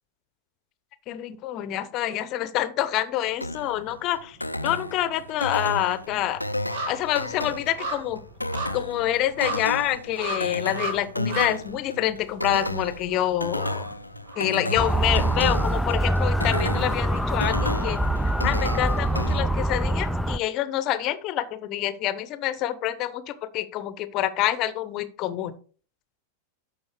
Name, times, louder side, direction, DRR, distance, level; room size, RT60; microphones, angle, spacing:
voice 1, 1.1-4.4 4.6-6.4 6.9-8.2 8.7-13.9 14.4-18.0 18.4-25.5, left 13 dB, 35° left, 14 dB, 0.9 m, -27 dB
sound 1, 3.4-19.4, left 1 dB, 85° left, 0.5 m, -33 dB
sound 2, 3.8-4.5 4.8-14.8 15.1-15.2, right 2 dB, 55° right, 1.8 m, -37 dB
Motor vehicle (road) / Siren, 14.8-20.4, right 1 dB, ahead, 0.4 m, -24 dB
12.5 x 5.2 x 3.4 m, 0.40 s
figure-of-eight pair, 90°, 0 cm